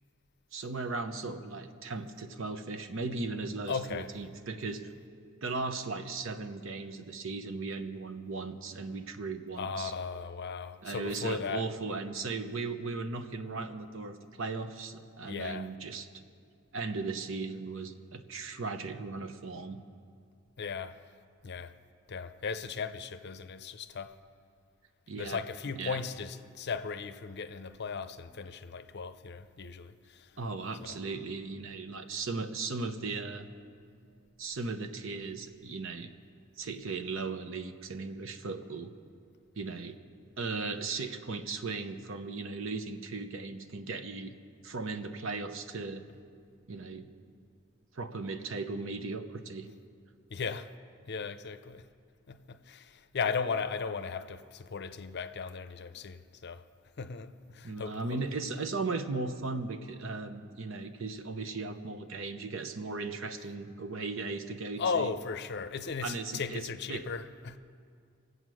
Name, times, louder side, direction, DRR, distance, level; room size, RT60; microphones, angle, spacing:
voice 1, 0.5-4.9 5.4-9.9 10.8-16.1 16.7-19.8 25.1-25.4 25.8-26.0 30.4-33.5 34.4-36.1 36.6-38.9 39.6-40.0 40.4-44.3 44.6-46.0 46.7-47.1 47.9-49.7 57.6-65.1 66.0-67.1, right 3 dB, 70° right, 0.8 m, -37 dB
voice 2, 3.7-4.1 9.6-11.7 15.2-15.7 20.6-21.0 21.4-21.7 22.1-24.2 25.2-30.3 30.8-31.0 50.3-50.7 51.1-51.8 52.3-56.6 57.0-58.2 64.8-67.6, left 5 dB, 55° left, 0.6 m, -36 dB
22.5 x 8.0 x 6.3 m
head